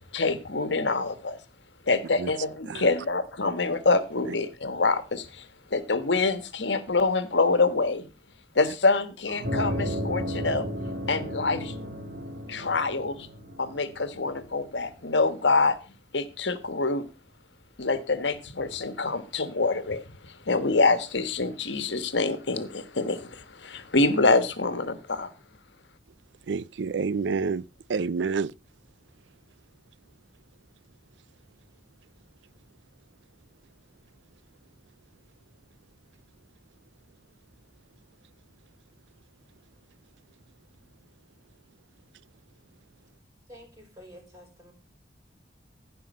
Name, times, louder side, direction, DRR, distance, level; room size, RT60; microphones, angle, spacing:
voice 1, 0.1-1.4 1.9-8.1 8.5-10.7 11.1-11.7 12.5-13.3 13.6-15.8 16.1-17.1 17.8-25.3, left 3 dB, 85° left, 1.4 m, -26 dB
sound 1, 9.4-14.3, equal, 55° right, 3.0 m, -33 dB
voice 2, 26.5-28.5, right 5 dB, 85° right, 0.5 m, -28 dB
voice 3, 43.5-44.7, equal, 20° right, 5.6 m, -49 dB
15.5 x 5.5 x 5.4 m
head